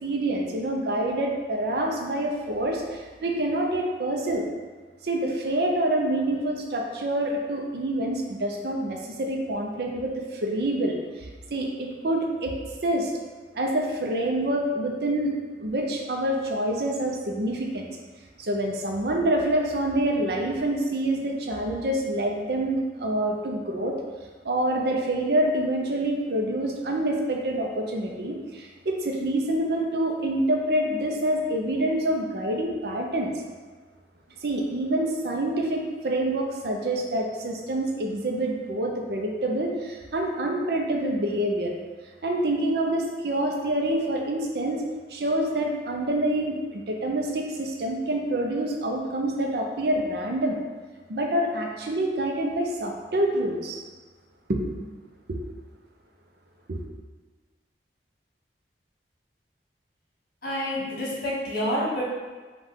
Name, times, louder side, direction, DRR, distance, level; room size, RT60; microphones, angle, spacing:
voice 1, 0.0-4.4 5.0-12.6 12.8-13.1 13.5-15.3 15.6-17.9 18.4-24.0 24.4-33.3 34.4-41.7 42.2-44.8 45.1-50.6 51.1-53.8 54.5-54.8 55.3-55.4 56.7-56.8, right 1 dB, 60° right, 1 dB, 0.6 m, -27 dB
voice 2, 60.4-62.0, equal, 55° left, -7 dB, 1.4 m, -28 dB
5.3 x 2.4 x 3.7 m, 1.4 s
head